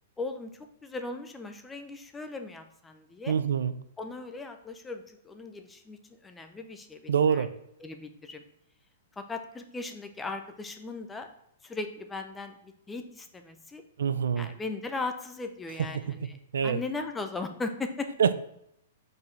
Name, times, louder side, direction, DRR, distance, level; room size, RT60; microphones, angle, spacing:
voice 1, 0.2-3.3 4.0-6.0 6.2-7.5 7.8-8.4 9.2-11.3 11.6-13.8 14.4-16.4 16.6-18.1, left 3 dB, 10° left, 6 dB, 0.7 m, -38 dB
voice 2, 3.3-3.7 7.1-7.5 14.0-14.5 15.9-16.1 16.5-16.8 18.2-18.3, right 7 dB, 85° right, 13 dB, 0.5 m, -25 dB
5.0 x 4.6 x 5.4 m, 0.76 s
hypercardioid pair, 140°, 0 cm